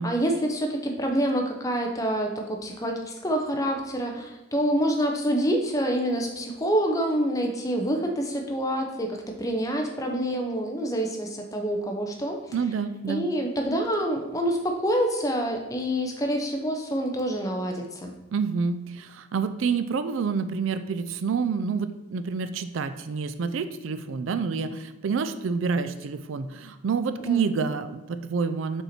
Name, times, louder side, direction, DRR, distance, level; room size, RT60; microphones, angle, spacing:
voice 1, 0.0-12.4 13.1-18.1 27.3-27.5, equal, 15° left, 3 dB, 0.7 m, -27 dB
voice 2, 12.5-13.3 18.3-28.8, right 5 dB, 70° right, 11 dB, 0.4 m, -28 dB
5.6 x 4.4 x 4.2 m, 1.0 s
head